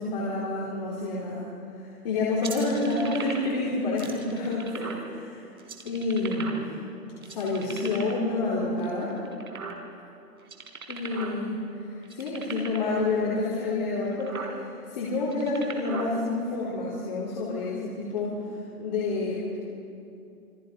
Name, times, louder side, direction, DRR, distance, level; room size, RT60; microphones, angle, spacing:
voice 1, 0.0-1.5 2.0-5.5 5.8-6.6 7.2-9.2 10.9-11.5 11.9-18.4 18.8-19.6, left 3 dB, 25° left, -8 dB, 4.2 m, -28 dB
sound 1, 2.4-3.6 4.0-5.1 5.6-6.9 7.2-8.3 8.8-10.1 10.4-11.4 11.6-11.7 12.0-12.9 13.6-13.7 14.1-14.5 15.2-16.1, right 5 dB, 65° right, 4.7 m, -38 dB
29.0 x 24.5 x 5.4 m, 2.6 s
hypercardioid pair, 175°, 47 cm